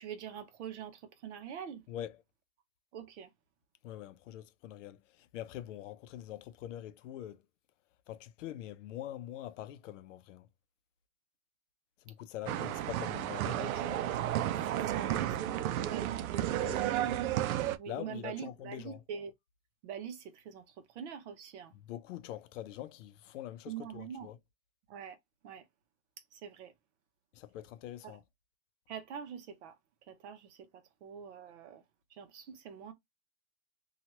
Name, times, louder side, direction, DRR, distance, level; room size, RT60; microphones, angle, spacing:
voice 1, 0.0-1.8 2.9-3.3 14.7-17.2 17.8-19.3 19.8-21.7 23.7-24.3 24.9-25.2 25.4-25.7 26.3-26.7 28.0-28.2 28.9-29.8 30.1-31.8 32.1-32.9, right 8 dB, 55° right, 0.8 m, -45 dB
voice 2, 1.9-2.2 3.8-7.4 8.1-10.5 12.0-14.0 16.5-17.2 17.9-19.0 21.7-24.4 27.3-28.2, left 12 dB, 65° left, 0.6 m, -44 dB
sound 1, 12.5-17.8, right 12 dB, 85° right, 0.5 m, -32 dB
2.9 x 2.4 x 2.9 m
supercardioid pair, 160°, 41 cm